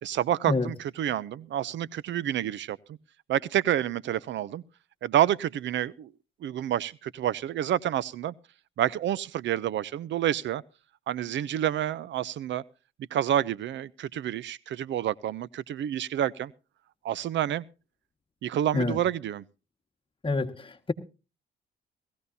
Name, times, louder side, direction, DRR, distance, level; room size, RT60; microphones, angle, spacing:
voice 1, 0.0-2.8 3.3-4.6 5.0-6.1 6.4-8.3 8.8-10.6 11.1-12.6 13.1-16.5 17.0-17.6 18.4-19.4, right 11 dB, 65° right, 0.6 m, -28 dB
voice 2, 20.2-20.9, left 3 dB, 25° left, 1.6 m, -27 dB
19.0 x 15.5 x 2.7 m
cardioid pair, 90°, 20 cm